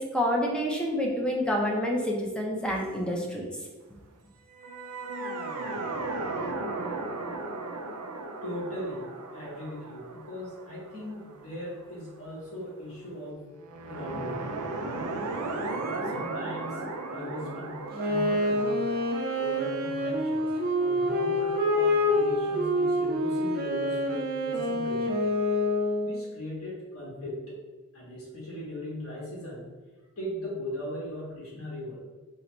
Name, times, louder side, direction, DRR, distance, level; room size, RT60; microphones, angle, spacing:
voice 1, 0.0-3.5, equal, 5° left, -1 dB, 0.5 m, -28 dB
sound 1, 4.5-11.8 13.6-21.4, right 2 dB, 85° right, 0.5 m, -36 dB
voice 2, 8.4-9.1 9.3-13.5 13.9-14.6 15.8-16.8 17.1-18.9 19.4-20.5 20.8-25.2 26.0-27.4 27.9-29.6 30.2-32.0, left 1 dB, 65° left, -5 dB, 1.5 m, -38 dB
Wind instrument woodwind instrument, 17.9-26.3, left 1 dB, 45° right, 0.6 m, -27 dB
4.4 x 2.1 x 3.8 m, 1.3 s
head